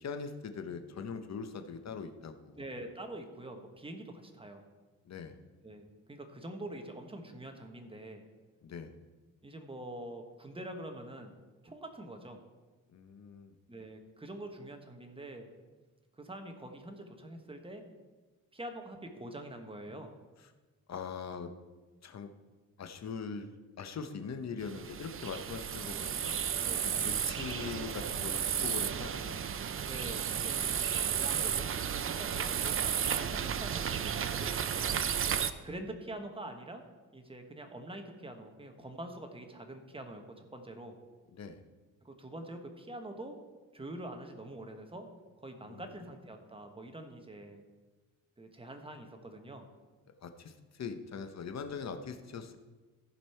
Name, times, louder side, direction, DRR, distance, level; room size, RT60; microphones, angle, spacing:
voice 1, 0.0-2.7 5.0-5.4 8.6-8.9 12.9-13.6 20.9-21.5 22.0-22.3 22.8-23.5 23.8-26.4 26.8-29.4 41.3-41.6 45.6-45.8 50.2-52.6, left 5 dB, 50° left, 8 dB, 0.9 m, -41 dB
voice 2, 2.5-4.6 5.6-8.2 9.4-11.3 11.6-12.4 13.7-15.5 16.2-17.8 18.5-20.1 26.6-26.9 29.8-30.7 31.1-34.6 35.6-36.8 37.1-40.9 42.0-43.4 43.7-45.0 45.4-47.6 48.4-49.7, right 1 dB, 15° right, 5 dB, 1.3 m, -45 dB
sound 1, 24.6-35.5, right 8 dB, 40° right, 0.5 m, -33 dB
15.0 x 5.3 x 4.4 m, 1.3 s
cardioid pair, 100°, 34 cm